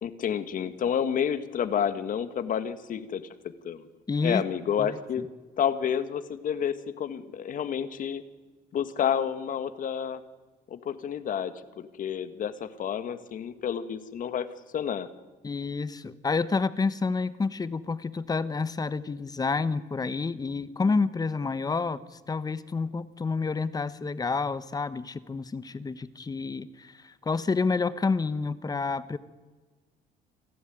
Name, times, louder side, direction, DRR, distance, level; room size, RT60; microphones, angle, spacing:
voice 1, 0.0-3.2 3.6-3.8 4.2-5.2 5.6-8.2 8.7-10.2 10.7-14.5 14.7-15.1, left 8 dB, 50° left, 12 dB, 1.7 m, -29 dB
voice 2, 4.1-4.4 4.8-4.9 15.4-29.2, left 4 dB, 20° left, 15 dB, 1.2 m, -29 dB
28.0 x 12.5 x 9.3 m, 1.3 s
cardioid pair, 110°, 17 cm